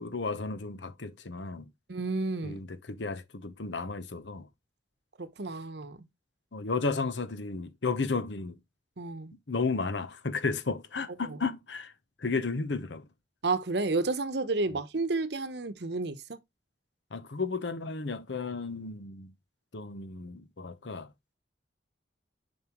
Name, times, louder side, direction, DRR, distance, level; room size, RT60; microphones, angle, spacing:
voice 1, 0.0-1.7 2.4-4.5 6.5-8.6 9.5-11.9 12.2-13.0 17.1-19.3 19.7-21.1, left 4 dB, 75° left, 0.9 m, -33 dB
voice 2, 1.9-2.6 5.2-6.1 9.0-9.3 11.2-11.4 13.4-16.4, right 3 dB, 65° right, 0.9 m, -31 dB
7.1 x 5.4 x 3.0 m
head